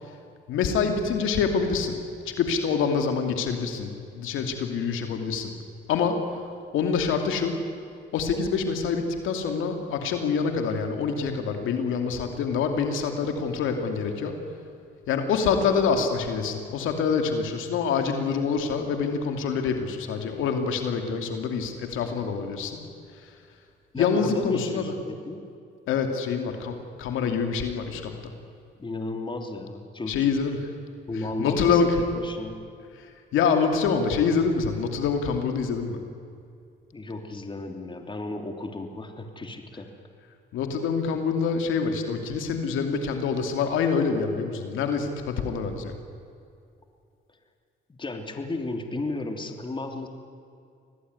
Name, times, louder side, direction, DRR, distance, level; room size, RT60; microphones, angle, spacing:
voice 1, 0.5-2.0 2.3-5.5 5.9-6.2 6.7-7.6 8.1-14.4 15.1-22.8 24.0-24.9 25.9-28.1 30.1-30.7 31.4-32.0 33.3-36.0 40.5-45.9, left 5 dB, 85° left, 5 dB, 2.7 m, -26 dB
voice 2, 23.9-25.5 28.8-30.3 31.1-32.6 36.9-39.9 47.9-50.1, left 2 dB, 25° left, 4 dB, 3.2 m, -34 dB
25.0 x 18.5 x 9.7 m, 2.4 s
cardioid pair, 90°, 20 cm